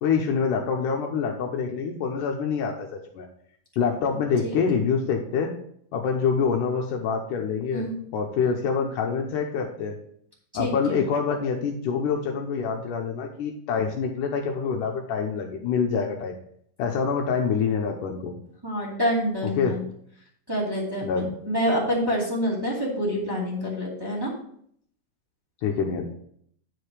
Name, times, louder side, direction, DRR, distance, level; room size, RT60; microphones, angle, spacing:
voice 1, 0.0-3.3 3.8-5.5 5.9-10.0 10.5-16.4 16.8-18.4 19.4-19.8 21.0-21.3 25.6-26.1, left 6 dB, 80° left, 1 dB, 2.3 m, -26 dB
voice 2, 10.5-11.0 18.6-19.8 20.5-24.3, equal, 10° right, -5 dB, 1.6 m, -27 dB
9.5 x 4.8 x 4.8 m, 0.65 s
omnidirectional pair, 3.9 m